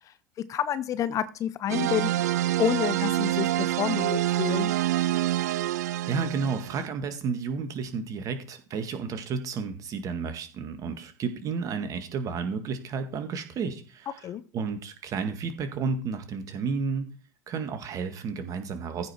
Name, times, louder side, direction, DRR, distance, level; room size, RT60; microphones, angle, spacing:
voice 1, 0.5-2.3 2.6-4.7 14.2-14.4, left 10 dB, 35° left, 15 dB, 0.7 m, -29 dB
sound 1, 1.7-6.9, right 14 dB, 65° right, 0.4 m, -26 dB
voice 2, 5.7-17.1 17.5-19.1, right 5 dB, 35° right, 8 dB, 1.9 m, -32 dB
15.0 x 5.3 x 4.5 m, 0.38 s
figure-of-eight pair, 80°, 9 cm